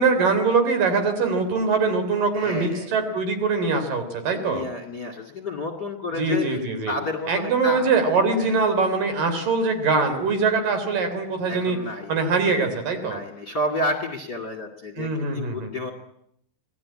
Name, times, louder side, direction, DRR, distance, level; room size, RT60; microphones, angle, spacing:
voice 1, 0.0-4.6 6.2-6.9 7.3-11.8 12.1-13.2 15.0-15.7, right 4 dB, 55° right, 7 dB, 5.0 m, -22 dB
voice 2, 2.3-2.9 4.4-7.9 8.4-8.6 11.5-12.3 13.0-15.9, left 1 dB, 30° left, 6 dB, 2.2 m, -31 dB
27.0 x 18.5 x 8.7 m, 0.72 s
omnidirectional pair, 4.6 m